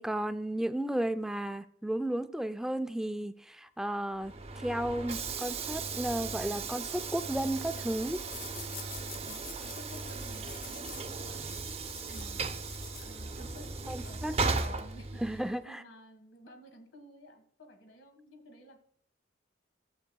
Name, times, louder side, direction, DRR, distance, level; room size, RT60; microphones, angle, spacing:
voice 1, 0.0-8.2 13.9-14.4 15.2-15.8, right 1 dB, 5° right, 0.4 m, -33 dB
Train / Sliding door, 4.2-15.6, right 4 dB, 35° right, 0.7 m, -37 dB
sound 1, 8.2-13.5, left 8 dB, 50° left, 0.7 m, -49 dB
voice 2, 9.2-11.6 12.1-12.5 13.0-18.8, equal, 80° left, 1.6 m, -52 dB
14.5 x 8.1 x 2.3 m
head